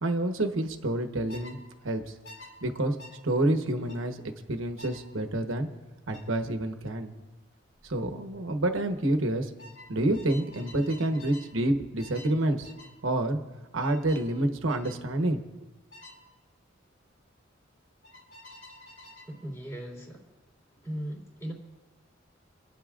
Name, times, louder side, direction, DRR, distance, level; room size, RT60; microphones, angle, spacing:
voice 1, 0.0-1.6 1.8-2.1 2.6-2.9 3.2-4.2 4.5-5.7 6.1-7.1 7.8-9.5 9.9-12.7 13.0-13.4 13.7-15.4, right 1 dB, 80° right, 6 dB, 1.1 m, -28 dB
sound 1, 1.3-1.6 2.2-2.5 3.0-3.2 3.9-4.1 4.8-5.0 6.1-6.3 7.8-8.0 8.3-8.7 9.6-11.5 12.0-12.3 12.6-12.9 13.8-14.3 14.7-15.0 15.9-16.2 18.0-19.3, left 1 dB, 75° left, 4.3 m, -49 dB
voice 2, 19.3-20.2 20.8-21.5, equal, 15° left, -3 dB, 3.1 m, -38 dB
28.0 x 10.0 x 2.5 m, 1.2 s
head